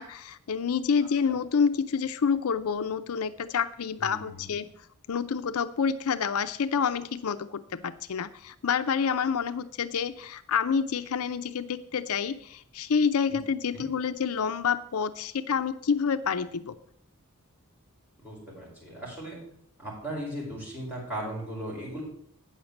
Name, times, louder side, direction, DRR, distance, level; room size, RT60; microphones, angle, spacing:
voice 1, 0.0-4.7 5.1-16.8, left 6 dB, 80° left, 12 dB, 0.5 m, -28 dB
voice 2, 4.0-4.5 13.3-13.4 13.7-13.9 18.2-19.4 19.8-22.0, right 1 dB, 10° right, -5 dB, 5.2 m, -37 dB
9.3 x 6.6 x 7.1 m, 0.67 s
head